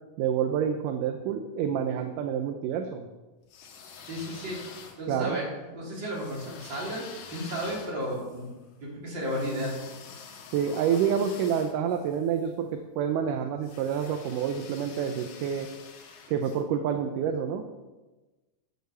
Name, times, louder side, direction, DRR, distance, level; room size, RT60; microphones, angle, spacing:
voice 1, 0.2-3.1 5.1-5.4 10.5-15.7 16.3-17.6, right 8 dB, 75° right, 6 dB, 2.1 m, -28 dB
sound 1, 3.4-5.3 6.1-12.5 13.6-16.6, left 6 dB, 75° left, 3.1 m, -47 dB
voice 2, 4.1-4.6 5.0-8.5 8.8-9.8, equal, 35° right, -4 dB, 3.7 m, -33 dB
11.5 x 7.0 x 6.7 m, 1.2 s
omnidirectional pair, 4.0 m